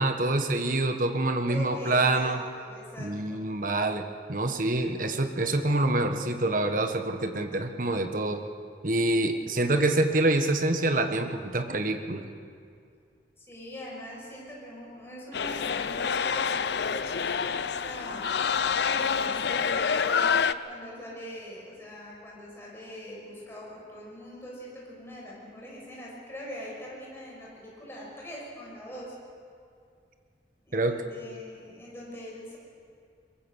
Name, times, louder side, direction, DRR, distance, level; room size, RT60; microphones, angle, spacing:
voice 1, 0.0-2.4 3.0-8.4 8.8-12.3 30.7-31.0, right 2 dB, 50° right, 6 dB, 1.5 m, -26 dB
voice 2, 1.5-3.4 13.4-18.3 18.9-20.4 20.6-29.1 30.6-32.6, equal, 15° left, -4 dB, 6.1 m, -42 dB
sound 1, 15.3-20.5, left 6 dB, 70° left, 0.6 m, -27 dB
23.0 x 22.0 x 6.5 m, 2.3 s
head